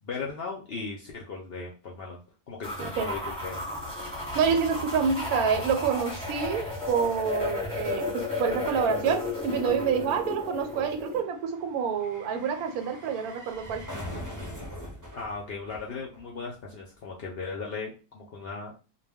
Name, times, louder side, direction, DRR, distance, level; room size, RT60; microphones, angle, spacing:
voice 1, 0.0-2.2 2.5-3.6 15.2-18.7, left 4 dB, 65° left, 0.6 m, -37 dB
sound 1, 2.6-11.2, left 2 dB, 5° left, 1.0 m, -33 dB
voice 2, 2.8-3.1 4.3-13.9, right 6 dB, 85° right, 1.1 m, -27 dB
sound 2, 9.9-16.6 16.9-17.0, equal, 20° right, 0.5 m, -44 dB
2.3 x 2.2 x 3.4 m
omnidirectional pair, 1.5 m